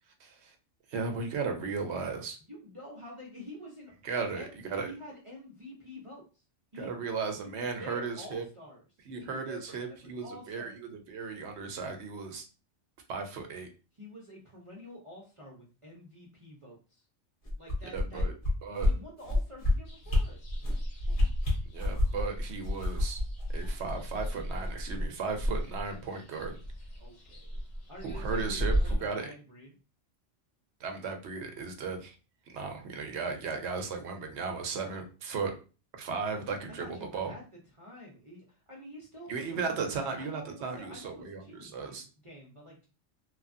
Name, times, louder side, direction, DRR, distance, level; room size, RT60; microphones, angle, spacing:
voice 1, 0.2-0.5 0.9-2.4 4.0-4.9 6.7-8.5 9.1-12.4 13.1-13.7 17.9-18.3 18.6-18.9 21.7-23.2 23.5-26.5 28.0-29.3 30.8-32.2 32.5-35.5 36.0-37.3 39.3-42.0, right 5 dB, 70° right, 5 dB, 0.9 m, -36 dB
voice 2, 2.4-3.9 4.4-4.6 4.9-6.4 6.7-7.0 7.4-8.8 9.2-10.8 14.0-17.1 17.6-18.3 18.7-20.4 21.1-21.2 27.0-27.6 27.9-29.7 36.7-42.9, left 1 dB, 35° right, -3 dB, 0.6 m, -48 dB
sound 1, 17.4-18.5 18.8-18.9 19.2-19.7 20.1-20.2 20.6-20.8 21.1-22.2 22.6-24.2 24.6-24.7, left 2 dB, 45° left, 1.1 m, -27 dB
sound 2, 19.8-29.0, equal, 70° left, 1.2 m, -35 dB
3.0 x 2.4 x 2.5 m, 0.33 s
omnidirectional pair, 1.3 m